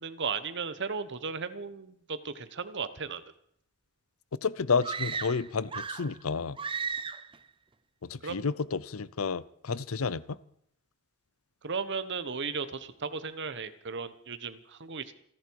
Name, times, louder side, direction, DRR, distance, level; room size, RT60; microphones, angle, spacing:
voice 1, 0.0-3.2 8.2-8.5 11.6-15.1, right 5 dB, 55° right, 12 dB, 1.1 m, -35 dB
voice 2, 4.4-6.6 8.0-10.4, left 5 dB, 70° left, 19 dB, 0.7 m, -31 dB
sound 1, 4.8-6.2 6.6-7.4, right 6 dB, 25° right, 0.5 m, -35 dB
28.0 x 10.5 x 4.7 m, 0.68 s
head